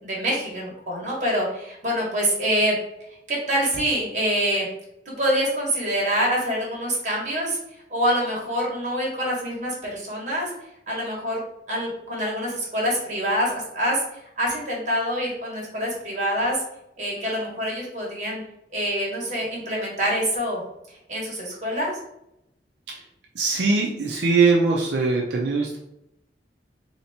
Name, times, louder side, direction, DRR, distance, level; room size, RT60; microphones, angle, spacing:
voice 1, 0.0-2.7 3.3-4.7 5.0-7.6 7.9-10.5 10.9-11.4 11.7-14.0 14.4-16.6 17.0-18.4 18.7-20.6 21.1-21.9, equal, 45° right, -3 dB, 1.5 m, -25 dB
voice 2, 23.4-25.8, right 4 dB, 80° right, -1 dB, 0.6 m, -21 dB
3.3 x 2.9 x 4.2 m, 0.83 s
head